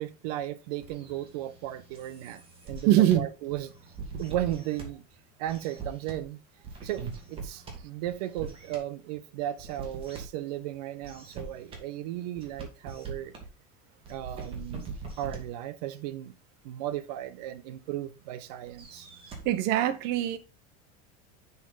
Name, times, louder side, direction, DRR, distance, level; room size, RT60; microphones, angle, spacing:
voice 1, 0.0-3.7 4.2-5.0 5.4-6.4 6.8-13.3 14.1-14.9 15.2-16.3 16.6-19.1, right 13 dB, 85° right, 1.0 m, -35 dB
sound 1, 0.8-3.2 3.5-4.8 5.5-6.2 6.6-7.8 8.0-8.8 9.6-10.2 11.0-11.8 12.4-13.4 14.0-15.4 18.7-19.4, right 4 dB, 30° right, 2.6 m, -42 dB
voice 2, 2.9-3.3 19.4-20.4, right 13 dB, 55° right, 1.0 m, -22 dB
7.0 x 6.1 x 4.0 m
cardioid pair, 160°, 20 cm